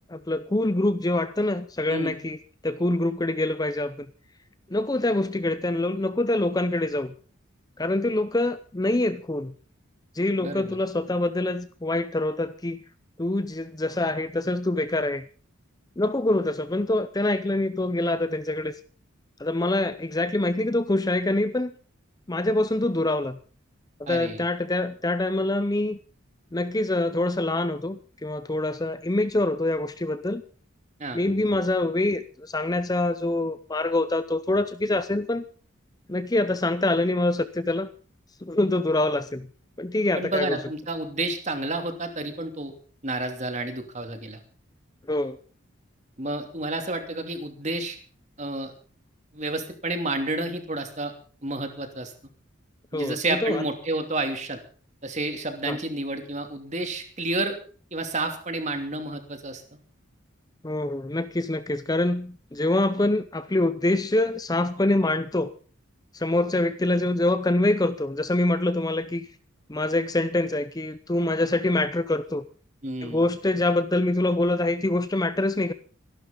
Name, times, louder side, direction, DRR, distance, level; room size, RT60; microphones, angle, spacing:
voice 1, 0.1-2.4 2.6-4.1 4.7-7.1 7.8-9.5 10.1-12.8 13.2-15.3 16.0-18.7 19.4-21.7 22.3-23.4 24.0-26.0 26.5-30.4 31.1-35.4 36.1-37.9 38.4-39.5 39.8-40.6 45.1-45.4 52.9-53.6 55.7-55.8 60.6-65.5 66.1-69.3 69.7-72.4 73.0-75.7, left 2 dB, 20° left, 12 dB, 0.7 m, -25 dB
voice 2, 10.4-10.8 24.1-24.4 31.0-31.2 40.2-42.7 43.0-44.4 46.2-48.0 48.4-48.7 49.3-51.1 51.4-52.1 52.9-54.6 55.0-57.6 57.9-59.6 72.8-73.3, right 2 dB, 35° right, 6 dB, 2.8 m, -30 dB
26.5 x 12.0 x 3.9 m, 0.42 s
head